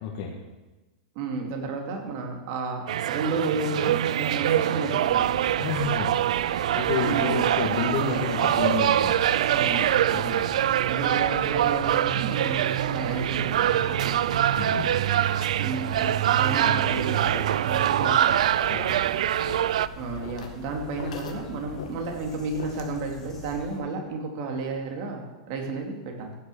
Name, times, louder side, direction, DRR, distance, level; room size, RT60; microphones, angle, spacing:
voice 1, 0.0-0.4 5.6-6.2 6.8-9.5 10.1-10.4 14.6-15.0 18.7-19.0, left 5 dB, 45° left, -3 dB, 2.1 m, -30 dB
voice 2, 1.1-5.3 7.0-7.4 9.5-9.9 10.1-10.5 10.9-14.4 15.5-18.3 19.9-26.4, right 3 dB, 40° right, 2 dB, 2.7 m, -32 dB
sound 1, 2.9-19.9, right 11 dB, 75° right, 0.4 m, -24 dB
sound 2, 5.1-23.8, left 1 dB, 10° left, 2.9 m, -44 dB
sound 3, 15.4-23.1, left 6 dB, 90° left, 2.0 m, -44 dB
15.0 x 6.9 x 7.0 m, 1.1 s
supercardioid pair, 160°, 4 cm